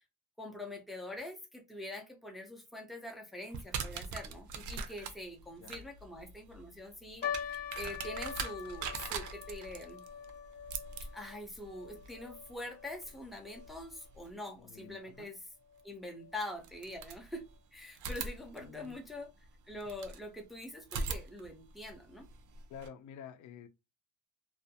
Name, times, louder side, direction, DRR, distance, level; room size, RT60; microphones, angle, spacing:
voice 1, 0.4-10.0 11.1-15.4 15.8-17.4 17.7-19.3 19.7-22.3, left 1 dB, ahead, 0.4 m, -44 dB
sound 1, 3.5-14.3 15.8-15.9 16.6-17.6 18.0-20.2 20.8-22.9, right 5 dB, 65° right, 0.5 m, -43 dB
sound 2, 7.2-13.7 14.0-14.1 14.8-15.1 15.7-15.8 16.2-16.3, left 8 dB, 30° left, 0.7 m, -43 dB
voice 2, 14.6-15.3 18.6-19.0 19.7-19.8 22.7-23.7, left 8 dB, 65° left, 0.5 m, -50 dB
2.4 x 2.2 x 2.7 m
cardioid pair, 155°, 33 cm